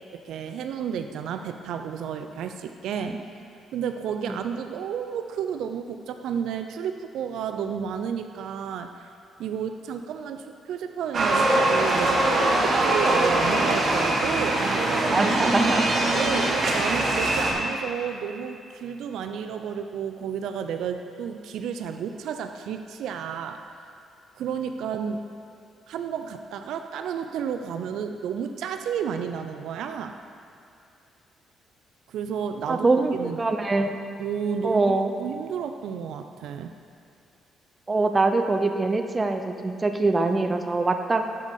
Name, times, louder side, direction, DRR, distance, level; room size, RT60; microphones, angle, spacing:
voice 1, 0.1-3.2 3.7-9.1 9.4-15.5 16.1-23.7 24.4-25.2 25.9-30.2 32.1-33.4 34.2-36.7, right 7 dB, 80° right, 7 dB, 0.3 m, -31 dB
sound 1, 11.1-17.5, right 2 dB, 50° right, 1.1 m, -22 dB
voice 2, 15.1-15.9 32.7-34.0 34.6-35.1 37.9-41.2, right 3 dB, 25° right, 6 dB, 0.5 m, -23 dB
6.8 x 5.1 x 5.2 m, 2.6 s
cardioid pair, 90°, 0 cm